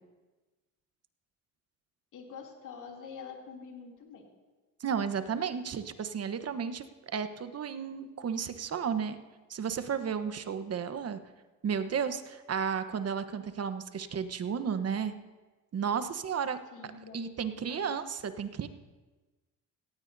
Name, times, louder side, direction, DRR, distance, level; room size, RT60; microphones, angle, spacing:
voice 1, 2.1-4.2 16.7-17.8, left 5 dB, 60° left, 0 dB, 3.0 m, -46 dB
voice 2, 4.8-6.8 7.1-9.2 9.5-11.2 11.6-15.1 15.7-16.6 17.1-18.7, right 7 dB, 45° right, 10 dB, 1.1 m, -33 dB
18.0 x 15.0 x 2.7 m, 1.2 s
supercardioid pair, 70°, 35 cm